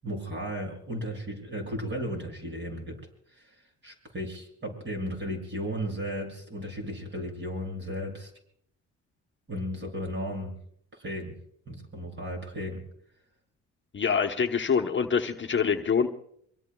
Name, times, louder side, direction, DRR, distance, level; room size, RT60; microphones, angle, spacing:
voice 1, 0.0-3.0 3.3-3.5 3.8-8.3 9.5-10.5 10.9-11.4 11.7-12.8, equal, 35° right, 1 dB, 7.3 m, -35 dB
voice 2, 13.9-16.1, left 6 dB, 40° left, 4 dB, 1.0 m, -25 dB
25.5 x 24.0 x 2.3 m, 0.68 s
cardioid pair, 90°, 30 cm